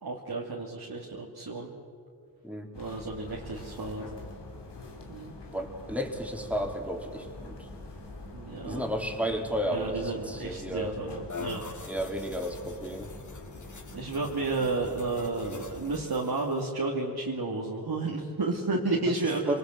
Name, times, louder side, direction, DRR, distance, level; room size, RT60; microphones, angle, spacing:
voice 1, 0.0-1.7 2.7-4.1 5.1-5.3 8.3-8.8 9.7-11.6 13.9-19.6, right 3 dB, 65° right, -2 dB, 2.7 m, -32 dB
sound 1, 2.7-16.1, left 2 dB, 80° left, 3.1 m, -45 dB
voice 2, 5.5-7.6 8.6-11.0 11.9-13.1 19.5-19.6, equal, 5° right, 2 dB, 3.9 m, -32 dB
sound 2, 11.3-16.7, left 3 dB, 45° left, 2.2 m, -45 dB
25.5 x 19.5 x 7.9 m, 2.3 s
cardioid pair, 45°, 41 cm